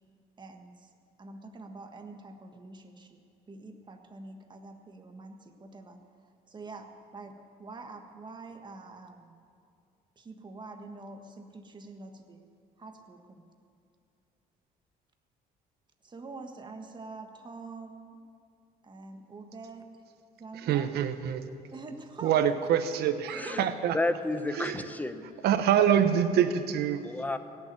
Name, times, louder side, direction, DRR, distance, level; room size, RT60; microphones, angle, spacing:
voice 1, 0.4-0.9 1.2-6.0 6.5-9.4 10.1-12.4 12.8-13.5 16.0-18.2 18.8-20.0 20.3-20.9 21.7-22.3 23.4-23.6, right 3 dB, 25° right, 5 dB, 1.5 m, -46 dB
voice 2, 20.6-21.4 22.2-24.0 24.5-24.8 25.4-27.0, right 9 dB, 70° right, 9 dB, 1.1 m, -25 dB
voice 3, 23.9-25.2 27.0-27.4, left 2 dB, 10° left, 10 dB, 0.8 m, -31 dB
17.0 x 7.0 x 9.7 m, 2.4 s
cardioid pair, 110°, 17 cm